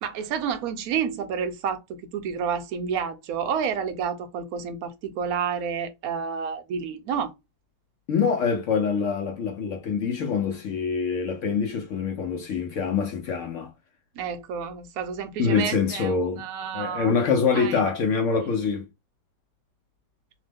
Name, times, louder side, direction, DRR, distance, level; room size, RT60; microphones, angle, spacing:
voice 1, 0.0-7.3 14.2-17.1 17.5-17.8, right 7 dB, 70° right, 0.9 m, -30 dB
voice 2, 8.1-13.7 15.4-16.5 16.7-18.9, left 5 dB, 75° left, 0.7 m, -25 dB
3.0 x 2.0 x 3.3 m
omnidirectional pair, 1.9 m